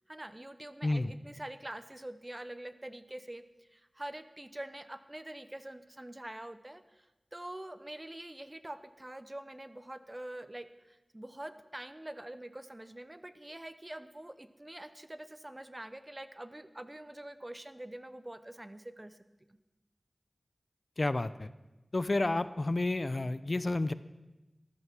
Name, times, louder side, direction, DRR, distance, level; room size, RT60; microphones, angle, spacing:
voice 1, 0.1-3.4 3.7-7.1 7.3-19.2 19.5-19.6, right 1 dB, 25° right, 12 dB, 0.9 m, -45 dB
voice 2, 21.0-21.5 21.9-23.9, left 2 dB, 50° left, 15 dB, 0.6 m, -30 dB
14.0 x 12.5 x 6.1 m, 1.1 s
wide cardioid pair, 45°, 0 cm